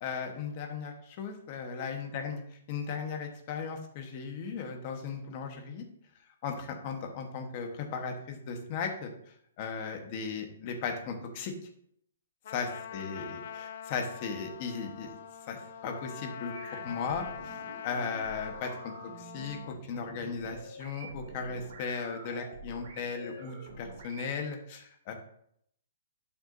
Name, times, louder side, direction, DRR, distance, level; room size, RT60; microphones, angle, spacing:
voice 1, 0.0-2.4 2.7-5.8 6.4-9.1 9.6-11.5 12.5-15.2 15.5-16.5 16.8-25.1, left 5 dB, 30° left, 4 dB, 1.1 m, -37 dB
Trumpet, 12.4-19.8, left 8 dB, 45° left, 0.5 m, -44 dB
sound 1, 16.5-24.3, right 2 dB, 50° right, 2.7 m, -47 dB
12.0 x 5.9 x 2.7 m, 0.70 s
hypercardioid pair, 175°, 0 cm